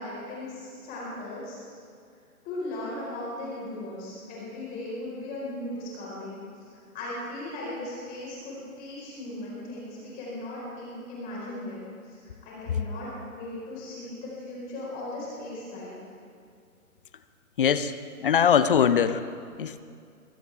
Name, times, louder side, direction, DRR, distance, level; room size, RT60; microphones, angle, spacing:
voice 1, 0.0-1.8 2.4-11.8 12.0-16.0, left 1 dB, 20° left, -6 dB, 5.0 m, -37 dB
voice 2, 17.6-17.9 18.2-19.2 19.6-19.8, left 8 dB, 40° left, 13 dB, 0.6 m, -21 dB
23.0 x 16.5 x 3.6 m, 2.3 s
figure-of-eight pair, 140°, 44 cm